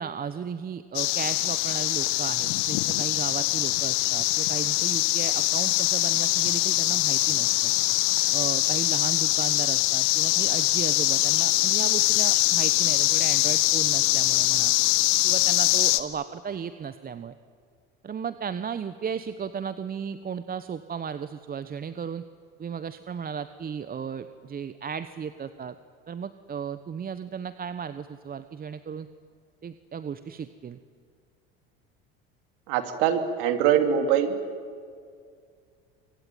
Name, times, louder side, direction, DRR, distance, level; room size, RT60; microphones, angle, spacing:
voice 1, 0.0-7.7 8.3-14.7 15.2-17.3 18.0-22.2 22.6-25.8 26.1-29.1 29.6-30.8, right 7 dB, 30° right, 12 dB, 1.1 m, -35 dB
sound 1, 0.9-16.0, left 19 dB, 75° left, 1.4 m, -23 dB
voice 2, 32.7-34.4, right 9 dB, 75° right, 7 dB, 3.0 m, -23 dB
25.5 x 24.0 x 9.4 m, 2.2 s
supercardioid pair, 85°, 29 cm